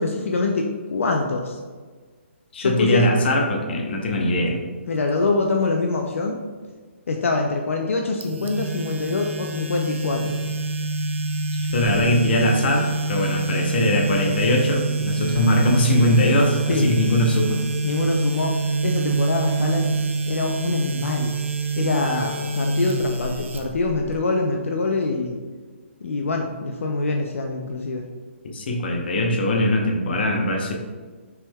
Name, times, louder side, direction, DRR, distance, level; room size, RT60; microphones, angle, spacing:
voice 1, 0.0-1.6 2.6-3.1 4.9-6.4 7.1-10.4 16.7-16.9 17.8-18.5 18.8-21.3 21.8-25.4 26.0-28.1, left 3 dB, 80° left, 2 dB, 0.5 m, -24 dB
voice 2, 2.5-4.6 11.5-17.6 28.5-30.7, left 1 dB, 50° left, 1 dB, 0.8 m, -21 dB
sound 1, 8.2-24.2, right 3 dB, 70° right, 0.5 m, -26 dB
5.8 x 3.5 x 2.3 m, 1.4 s
hypercardioid pair, 160°, 7 cm